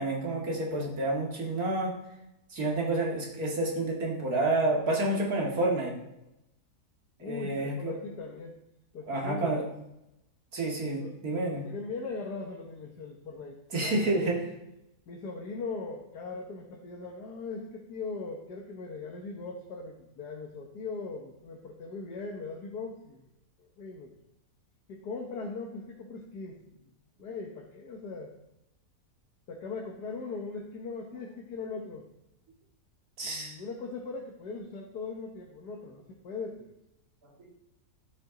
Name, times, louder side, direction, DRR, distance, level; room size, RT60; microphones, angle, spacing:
voice 1, 0.0-1.9 2.5-6.0 7.2-8.0 9.1-9.6 10.5-11.6 13.7-14.4 33.2-33.5 37.4-37.5, right 2 dB, 65° right, -1 dB, 2.5 m, -29 dB
voice 2, 7.2-8.6 8.9-9.7 11.0-11.2 11.5-14.3 15.1-23.2 23.6-24.1 24.9-26.9 27.2-28.3 29.5-32.1 33.2-36.7, left 4 dB, 90° left, 0 dB, 1.7 m, -40 dB
12.5 x 7.6 x 3.9 m, 0.88 s
omnidirectional pair, 1.7 m